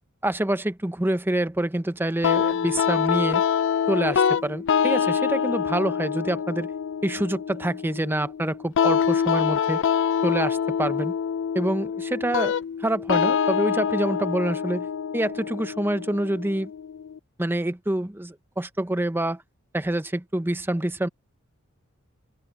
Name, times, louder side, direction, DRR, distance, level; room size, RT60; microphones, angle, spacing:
voice 1, 0.2-3.4 3.9-6.7 7.0-9.8 10.2-11.1 11.5-14.9 15.1-16.7 17.4-19.4 19.7-21.1, right 1 dB, 10° right, 0.7 m, -26 dB
sound 1, 2.2-17.2, left 7 dB, 60° left, 0.4 m, -25 dB
open air
head